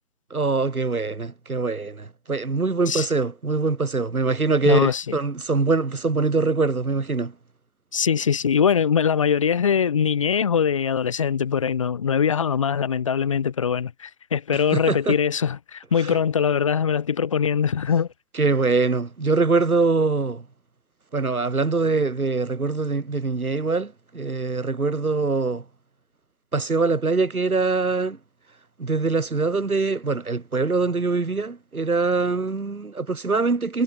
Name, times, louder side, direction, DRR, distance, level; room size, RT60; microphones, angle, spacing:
voice 1, 0.3-7.3 14.7-15.2 16.0-16.2 18.3-20.4 21.1-25.6 26.5-28.2 28.8-33.8, right 4 dB, 85° right, 2.9 m, -23 dB
voice 2, 4.7-5.2 7.9-18.1, left 7 dB, 20° left, 3.8 m, -22 dB
figure-of-eight pair, 170°, 42 cm